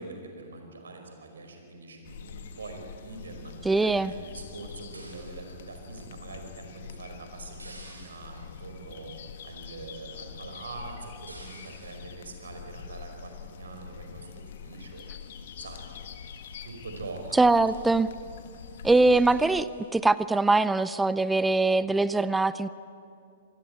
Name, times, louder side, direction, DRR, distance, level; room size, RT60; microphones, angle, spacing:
voice 1, 0.0-3.5 3.8-9.1 9.4-15.0 15.6-15.9 16.6-17.4, right 3 dB, 65° right, 4 dB, 5.0 m, -43 dB
sound 1, 2.0-19.6, left 7 dB, 55° left, 1.7 m, -45 dB
voice 2, 3.6-4.1 17.4-18.1 18.8-22.7, right 3 dB, 5° right, 16 dB, 0.5 m, -22 dB
sound 2, 4.9-5.5 7.6-8.6 11.3-12.1 13.2-13.5 14.2-14.7 15.0-15.1 15.5-15.9 16.4-16.8 17.1-17.2 17.4-18.0 18.5-18.8 19.7-19.9, right 2 dB, 85° right, 5.4 m, -52 dB
27.5 x 20.5 x 9.2 m, 2.5 s
figure-of-eight pair, 110°, 0 cm